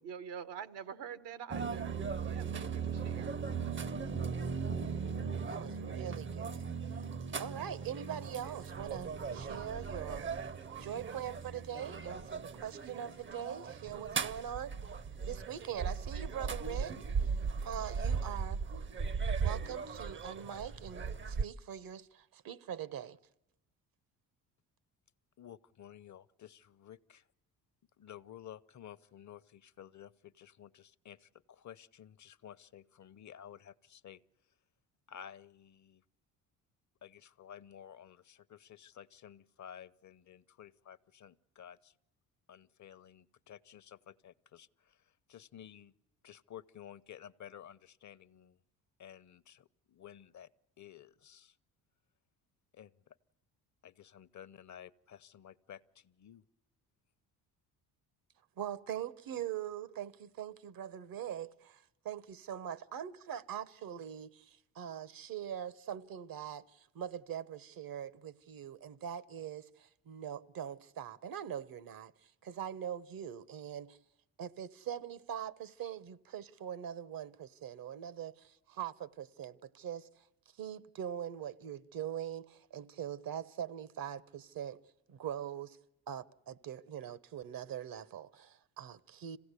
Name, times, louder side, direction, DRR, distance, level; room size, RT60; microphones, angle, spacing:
voice 1, 0.0-1.8 2.2-3.4, right 8 dB, 80° right, 1.5 m, -45 dB
sound 1, 1.5-21.4, right 5 dB, 30° right, 0.7 m, -38 dB
voice 2, 5.5-7.0 7.3-10.3 10.8-15.0 15.3-17.3 17.6-18.6 19.4-23.2 58.6-74.0 74.4-80.3 80.6-84.8 85.1-85.8 86.1-89.4, right 9 dB, 60° right, 1.1 m, -42 dB
voice 3, 25.4-27.3 28.0-34.2 35.1-36.0 37.0-42.0 42.5-45.9 46.2-48.6 49.0-50.5 50.8-51.6 52.7-53.2 53.8-56.4, left 9 dB, 45° left, 0.8 m, -53 dB
26.5 x 16.5 x 8.2 m
supercardioid pair, 65°, 40 cm